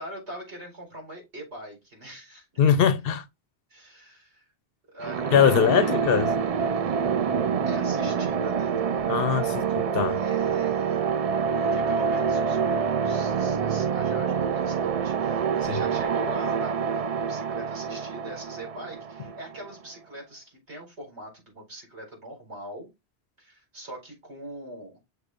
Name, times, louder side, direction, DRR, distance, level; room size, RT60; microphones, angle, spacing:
voice 1, 0.0-2.6 3.7-4.5 4.9-5.2 5.5-5.9 6.7-7.0 7.7-8.7 9.3-9.6 10.1-11.0 11.6-22.9 23.4-25.0, right 1 dB, 80° right, 4.6 m, -42 dB
voice 2, 2.6-3.2 5.3-6.3 9.1-10.2 15.7-15.8, left 8 dB, 65° left, 0.8 m, -22 dB
sound 1, 5.0-19.7, right 6 dB, 50° right, 0.4 m, -26 dB
sound 2, 7.1-16.1, equal, 30° right, 3.4 m, -47 dB
6.6 x 6.6 x 2.5 m
omnidirectional pair, 1.1 m